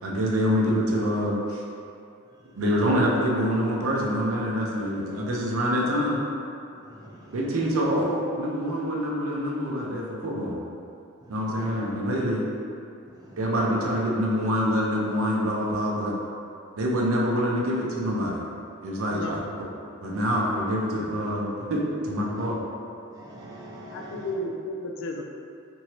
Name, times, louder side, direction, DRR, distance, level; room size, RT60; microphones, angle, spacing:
voice 1, 0.0-1.6 2.6-6.2 7.3-10.6 11.3-12.4 13.4-16.1 16.8-18.4 18.8-19.4 20.0-22.6, equal, 90° right, -2 dB, 0.5 m, -26 dB
voice 2, 6.9-7.4 11.5-11.7 13.1-13.4 20.2-20.4 22.4-22.5 23.1-24.3, right 1 dB, 20° right, -4 dB, 0.4 m, -44 dB
voice 3, 19.1-19.4 23.9-25.2, left 1 dB, 60° left, 3 dB, 0.3 m, -33 dB
2.9 x 2.6 x 2.9 m, 2.5 s
head